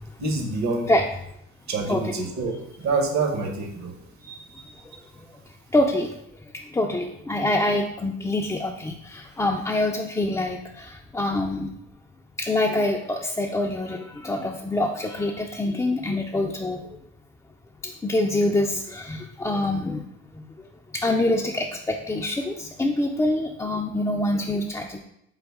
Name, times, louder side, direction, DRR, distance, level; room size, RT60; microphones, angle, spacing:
voice 1, 0.2-0.9 1.7-3.9, right 3 dB, 65° right, 3 dB, 1.1 m, -26 dB
voice 2, 1.9-2.3 4.2-4.8 5.7-6.2 6.5-11.7 12.4-16.8 17.8-20.1 20.3-20.4 20.9-25.0, left 1 dB, 10° left, 0 dB, 0.3 m, -25 dB
3.9 x 3.8 x 3.5 m, 0.77 s
cardioid pair, 90°, 30 cm